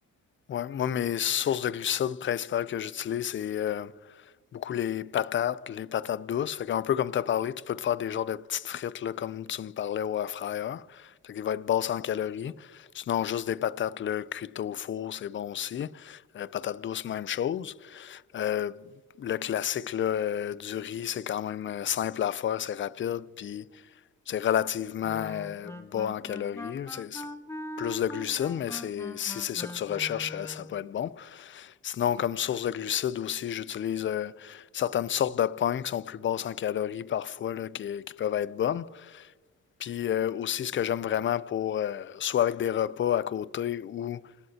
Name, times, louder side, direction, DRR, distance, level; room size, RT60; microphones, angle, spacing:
voice 1, 0.5-4.2 4.5-18.9 19.2-23.8 24.3-27.3 27.8-39.3 39.8-44.2, left 10 dB, 40° left, 0.5 m, -30 dB
Wind instrument woodwind instrument, 25.0-30.8, left 1 dB, 10° left, 1.2 m, -41 dB
27.0 x 12.5 x 2.9 m
cardioid pair, 90°, 30 cm